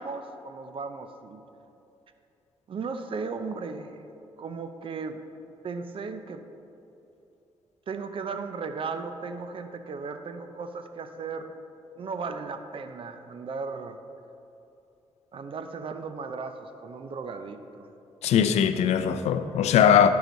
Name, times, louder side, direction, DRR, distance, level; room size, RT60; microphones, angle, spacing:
voice 1, 0.0-1.4 2.7-4.0 4.4-5.2 5.6-6.4 7.9-11.5 12.0-14.0 15.3-17.9, right 4 dB, 55° right, 0.6 m, -36 dB
voice 2, 18.2-20.1, left 8 dB, 85° left, 0.4 m, -20 dB
12.0 x 4.8 x 4.0 m
cardioid pair, 75°, 11 cm